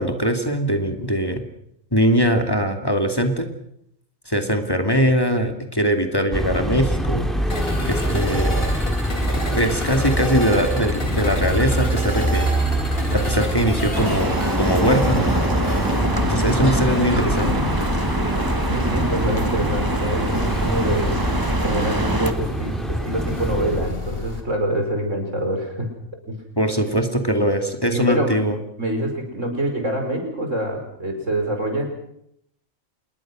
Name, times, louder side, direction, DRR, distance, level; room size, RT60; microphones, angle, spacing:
voice 1, 0.0-1.4 1.9-3.5 4.3-8.5 9.5-12.5 13.1-15.4 16.3-17.5 26.6-28.6, equal, 20° left, 5 dB, 2.5 m, -21 dB
sound 1, 6.3-23.9, equal, ahead, 3.4 m, -25 dB
sound 2, 7.5-24.4, left 1 dB, 50° left, 3.8 m, -31 dB
sound 3, 13.9-22.3, right 1 dB, 15° right, 1.5 m, -25 dB
voice 2, 16.5-17.8 18.7-21.2 21.6-25.9 26.2-26.4 27.9-28.4 28.8-31.9, right 1 dB, 80° right, 4 dB, 5.5 m, -26 dB
27.5 x 21.0 x 6.3 m, 0.74 s
omnidirectional pair, 1.3 m